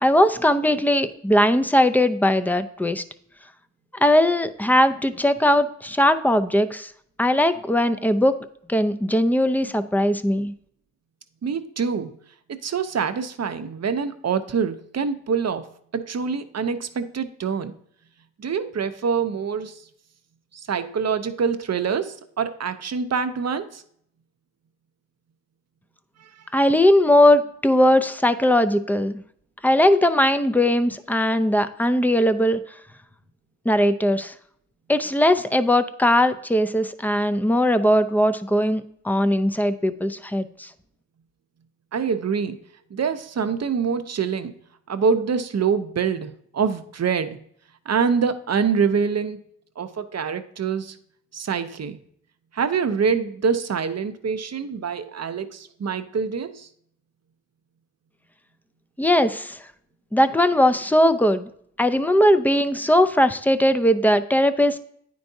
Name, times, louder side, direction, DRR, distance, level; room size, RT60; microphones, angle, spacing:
voice 1, 0.0-3.0 3.9-6.9 7.2-8.3 8.7-10.5 26.5-29.2 29.6-32.6 33.6-34.3 34.9-40.7 59.0-59.6 60.1-61.5 61.8-64.8, left 1 dB, 5° left, 10 dB, 0.5 m, -19 dB
voice 2, 11.4-12.1 12.6-15.7 15.9-17.7 18.4-19.8 20.7-23.8 26.2-26.3 41.9-42.6 42.9-44.5 44.9-47.4 47.9-49.4 49.8-51.0 51.3-52.0 52.5-56.7, right 6 dB, 55° right, 10 dB, 0.7 m, -25 dB
9.4 x 4.6 x 2.7 m, 0.66 s
cardioid pair, 45°, 31 cm